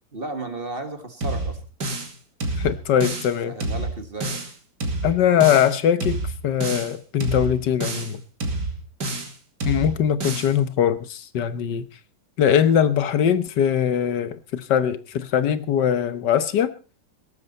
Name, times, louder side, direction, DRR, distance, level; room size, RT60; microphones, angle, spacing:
voice 1, 0.1-1.6 3.5-4.4, right 2 dB, 30° right, 8 dB, 1.8 m, -33 dB
sound 1, 1.2-2.1 2.4-3.3 3.6-4.5 4.8-5.7 6.0-6.9 7.2-8.1 8.4-9.3 9.6-10.5, right 2 dB, 70° right, 3.0 m, -28 dB
voice 2, 2.6-3.5 5.0-8.2 9.7-11.8 12.4-16.7, left 9 dB, 75° left, 13 dB, 1.6 m, -21 dB
17.5 x 13.5 x 4.2 m, 0.34 s
omnidirectional pair, 1.9 m